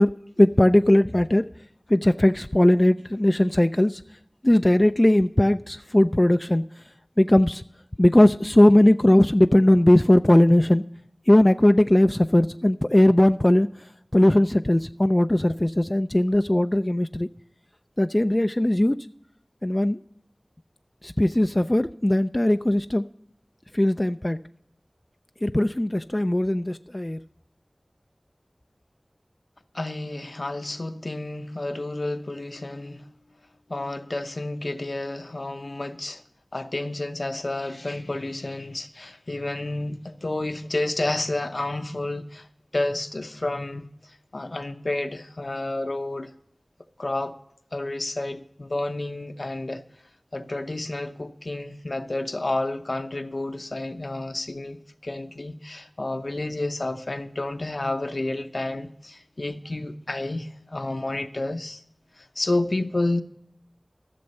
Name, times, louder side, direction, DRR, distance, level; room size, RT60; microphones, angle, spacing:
voice 1, 0.0-1.5 1.9-4.0 4.4-6.6 7.2-7.6 8.0-10.8 11.3-17.3 18.0-19.0 19.6-20.0 21.0-23.0 23.7-24.4 25.4-27.2, left 1 dB, 25° left, 0.3 m, -19 dB
voice 2, 29.7-33.1 33.7-36.2 36.5-42.5 42.7-46.3 47.0-47.4 47.7-49.8 50.3-61.8 62.2-63.2, left 2 dB, 65° left, 0.7 m, -30 dB
14.0 x 6.9 x 5.3 m
wide cardioid pair, 45°, 0 cm